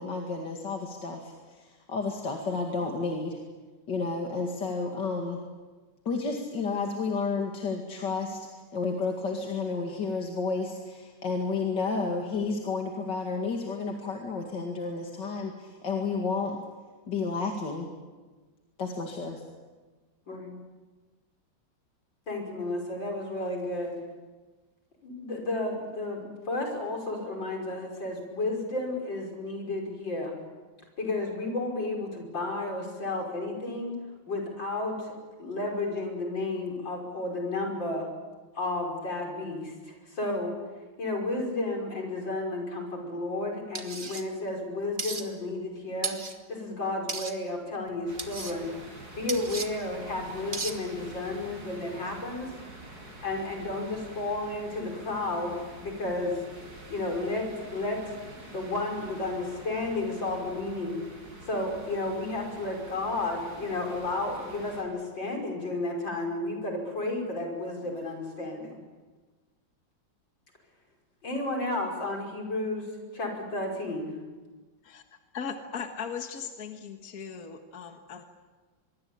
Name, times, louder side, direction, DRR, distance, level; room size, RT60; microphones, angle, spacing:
voice 1, 0.0-3.4 3.9-5.4 6.1-8.4 8.7-16.6 17.1-17.9 18.8-19.4, left 4 dB, 70° left, 2 dB, 2.9 m, -31 dB
voice 2, 22.3-24.0 25.0-30.4 31.0-34.0 34.3-35.1 35.4-38.1 38.5-40.6 41.0-46.2 46.5-48.7 49.1-52.5 53.2-56.4 56.9-58.1 58.4-61.0 61.5-68.8 71.2-72.9 73.1-74.1, left 2 dB, 85° left, 1 dB, 6.3 m, -32 dB
sound 1, 43.7-44.2 45.0-45.2 46.0-46.3 47.1-47.3 48.2-48.5 49.3-49.7 50.5-50.7, right 4 dB, 30° right, 1.8 m, -34 dB
sound 2, 48.1-64.8, right 1 dB, 60° right, 6.3 m, -47 dB
voice 3, 75.3-78.2, left 6 dB, 55° left, 5 dB, 1.9 m, -38 dB
24.5 x 23.0 x 8.7 m, 1.3 s
omnidirectional pair, 2.0 m